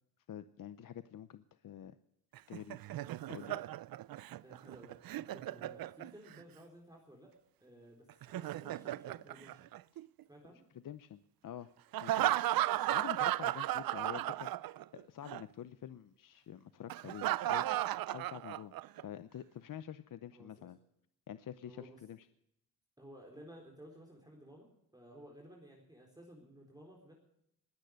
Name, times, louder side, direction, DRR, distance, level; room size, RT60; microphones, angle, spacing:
voice 1, 0.3-2.0 2.5-2.8 3.3-3.6 10.7-11.7 12.0-12.3 12.7-20.8 21.3-22.3, left 10 dB, 60° left, 13 dB, 0.7 m, -48 dB
Laughter, 2.4-6.4 8.1-10.2 11.9-15.0 15.3-15.4 16.9-19.0, right 14 dB, 70° right, 0.5 m, -35 dB
voice 2, 4.4-7.3 7.6-9.7 10.3-10.6 20.3-20.7 21.7-22.0 23.0-24.7 24.9-27.1, equal, 10° right, -1 dB, 4.0 m, -55 dB
20.5 x 9.2 x 6.4 m, 0.76 s
cardioid pair, 100°, 37 cm